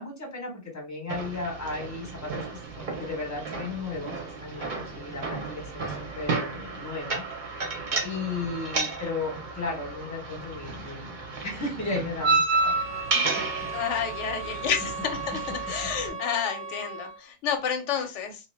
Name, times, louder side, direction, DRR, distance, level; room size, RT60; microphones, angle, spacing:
voice 1, 0.0-2.4 3.0-7.7 8.0-11.2 11.4-12.8 13.1-13.4, left 3 dB, 15° left, 0 dB, 0.9 m, -35 dB
sound 1, 1.1-16.1, right 3 dB, 50° right, 0.7 m, -32 dB
sound 2, 12.5-17.3, right 4 dB, 85° right, 1.1 m, -37 dB
voice 2, 13.7-15.4 15.7-18.4, left 8 dB, 90° left, 6 dB, 0.9 m, -30 dB
2.7 x 2.0 x 3.2 m, 0.29 s
omnidirectional pair, 1.2 m